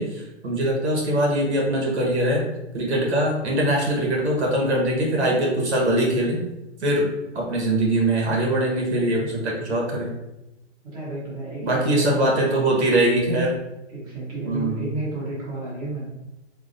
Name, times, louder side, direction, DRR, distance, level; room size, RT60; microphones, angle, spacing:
voice 1, 0.0-2.4 2.7-6.4 6.8-7.1 7.3-10.1 11.6-13.6 14.4-14.9, right 1 dB, 65° right, -2 dB, 1.3 m, -22 dB
voice 2, 5.2-5.7 10.8-12.7 13.9-16.1, right 2 dB, 30° right, -7 dB, 1.1 m, -31 dB
4.0 x 2.7 x 2.5 m, 0.95 s
hypercardioid pair, 170°, 36 cm